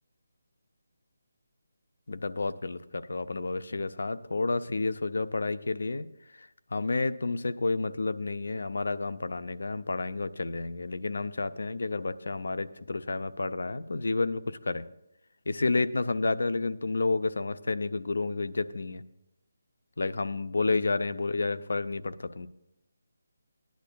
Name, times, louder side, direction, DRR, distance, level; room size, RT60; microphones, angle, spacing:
voice 1, 2.1-6.1 6.7-14.8 15.5-19.0 20.0-22.5, left 3 dB, 75° left, 13 dB, 0.5 m, -30 dB
17.5 x 10.5 x 2.3 m, 0.86 s
figure-of-eight pair, 160°, 0 cm